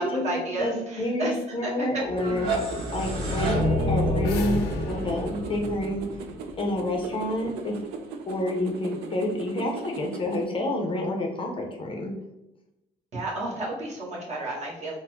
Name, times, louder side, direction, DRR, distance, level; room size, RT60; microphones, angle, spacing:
voice 1, 0.0-1.3 1.6-1.9 13.1-15.0, right 2 dB, 40° right, -4 dB, 1.2 m, -31 dB
voice 2, 0.5-2.5 2.9-6.1 6.6-7.8 8.3-12.1, left 1 dB, 30° left, 1 dB, 0.5 m, -29 dB
sound 1, 2.1-7.0, equal, 65° right, 1.3 m, -28 dB
sound 2, 2.2-10.5, right 4 dB, 85° right, 0.4 m, -38 dB
sound 3, 3.8-6.9, left 5 dB, 80° left, 0.5 m, -40 dB
4.0 x 2.0 x 2.8 m, 0.92 s
cardioid pair, 110°, 17 cm